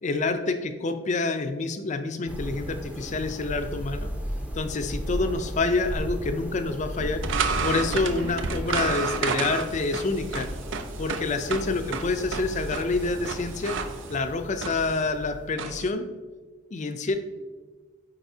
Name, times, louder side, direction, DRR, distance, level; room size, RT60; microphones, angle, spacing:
voice 1, 0.0-4.1 4.5-7.2 7.6-10.5 11.0-13.8 14.1-16.1 16.7-17.2, left 3 dB, 40° left, 8 dB, 0.5 m, -27 dB
sound 1, 2.3-15.6, equal, 10° right, 0.6 m, -36 dB
sound 2, 7.0-15.9, right 4 dB, 70° right, 0.5 m, -31 dB
8.9 x 4.1 x 2.7 m, 1.3 s
head